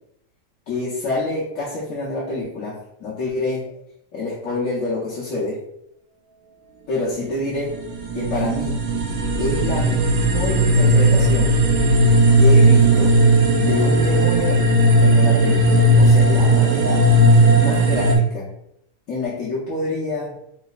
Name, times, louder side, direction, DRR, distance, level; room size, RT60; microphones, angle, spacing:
voice 1, 0.7-3.7 4.1-5.6 6.9-7.7 8.1-8.9 9.4-11.5 12.4-13.2 13.6-14.6 15.0-17.0 17.5-18.5 19.1-20.3, left 2 dB, 55° left, -8 dB, 1.1 m, -27 dB
sound 1, 7.5-18.2, right 1 dB, 70° right, 1.0 m, -16 dB
4.0 x 2.7 x 2.4 m, 0.78 s
omnidirectional pair, 1.8 m